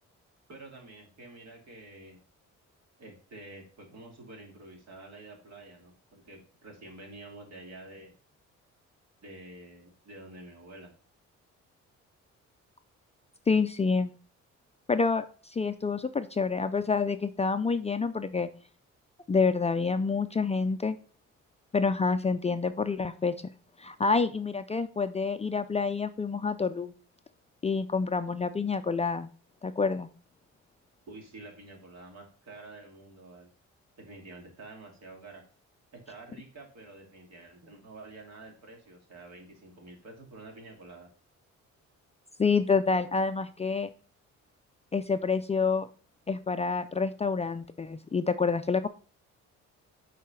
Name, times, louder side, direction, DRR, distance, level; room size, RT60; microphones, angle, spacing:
voice 1, 0.5-2.2 3.0-8.1 9.2-10.9 31.1-33.5 34.0-35.4 35.9-41.1, right 2 dB, 60° right, 1 dB, 2.8 m, -48 dB
voice 2, 13.5-14.1 14.9-18.5 19.3-21.0 21.7-23.3 23.8-26.9 27.6-29.3 29.6-30.1 42.4-43.9 44.9-45.9 46.3-48.9, left 4 dB, 20° left, 10 dB, 0.4 m, -28 dB
6.6 x 4.1 x 5.7 m, 0.39 s
cardioid pair, 90°, 30 cm